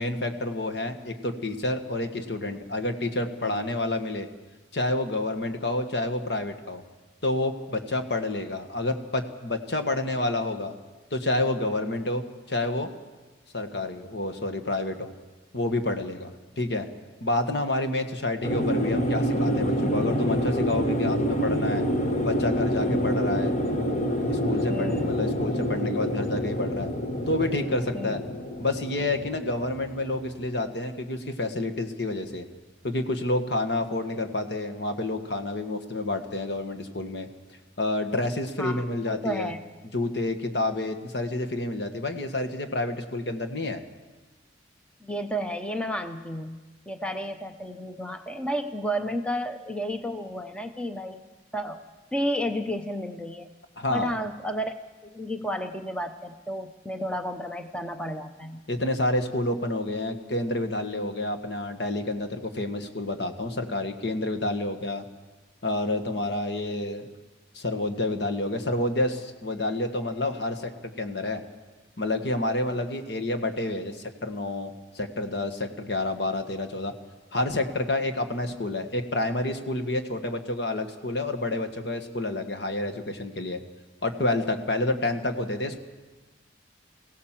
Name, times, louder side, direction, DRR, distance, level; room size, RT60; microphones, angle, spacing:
voice 1, 0.0-4.3 4.7-6.8 7.2-10.7 11.1-12.9 13.5-15.1 15.5-16.9 17.2-21.8 22.2-23.6 24.1-26.9 27.3-28.2 28.6-32.4 32.8-37.3 37.8-39.5 39.9-43.8 53.8-54.2 58.7-65.0 65.6-67.1 67.5-70.7 71.0-71.4 72.0-76.9 77.3-83.6 84.0-85.8, left 2 dB, 60° left, 7 dB, 1.6 m, -29 dB
sound 1, 18.4-30.7, equal, 40° left, 1.3 m, -27 dB
voice 2, 24.7-25.2 27.9-28.2 38.6-39.6 45.0-46.6 46.9-51.2 51.5-51.8 52.1-53.5 53.9-54.7 55.0-58.7, equal, 5° left, 7 dB, 0.7 m, -32 dB
23.5 x 16.5 x 7.5 m, 1.3 s
head